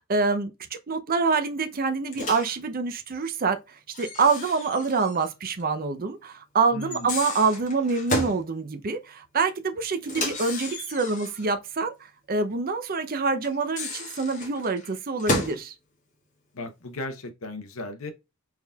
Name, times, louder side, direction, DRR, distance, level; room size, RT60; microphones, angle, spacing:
voice 1, 0.1-0.5 0.9-3.6 4.0-11.9 12.3-15.7, right 4 dB, 40° right, 0.6 m, -26 dB
Microwave oven, 2.1-2.6 3.9-5.3 5.6-5.7 6.8-8.4 10.0-11.5 13.4-15.6, left 2 dB, 35° left, 1.6 m, -32 dB
voice 2, 6.7-7.1 16.5-18.1, left 2 dB, 60° left, 0.8 m, -36 dB
4.5 x 3.7 x 2.3 m
head